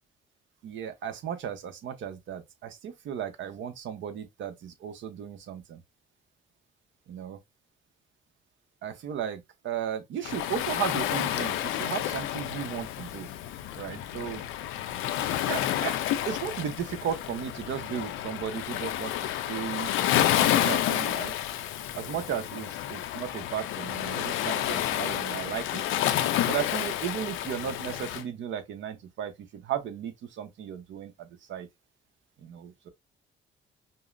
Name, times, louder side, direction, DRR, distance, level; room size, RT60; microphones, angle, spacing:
voice 1, 0.6-5.8 7.1-7.4 8.8-13.3 13.7-14.4 15.4-15.9 16.2-19.1 19.5-19.9 20.3-21.3 21.9-25.8 26.5-31.7 32.4-32.9, right 9 dB, 75° right, 0.9 m, -35 dB
Waves surf, 10.2-28.2, left 12 dB, 90° left, 0.5 m, -30 dB
5.4 x 2.0 x 2.6 m
cardioid pair, 90°, 20 cm